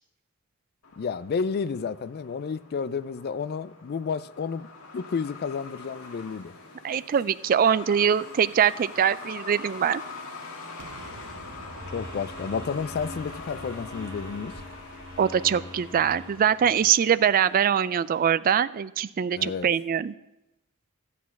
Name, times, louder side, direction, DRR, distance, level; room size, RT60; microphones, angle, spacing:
Truck, 0.8-18.3, left 3 dB, 85° left, 1.7 m, -44 dB
voice 1, 1.0-4.7 4.9-6.5 11.9-14.5 19.4-19.7, left 5 dB, 50° left, 17 dB, 0.4 m, -31 dB
voice 2, 6.8-10.0 15.2-20.1, right 8 dB, 40° right, 16 dB, 0.3 m, -23 dB
Explosion, 10.8-16.8, right 2 dB, 60° right, 1.0 m, -49 dB
sound 1, 11.8-16.9, left 2 dB, 25° right, 1.2 m, -43 dB
12.5 x 8.4 x 5.9 m, 0.94 s
head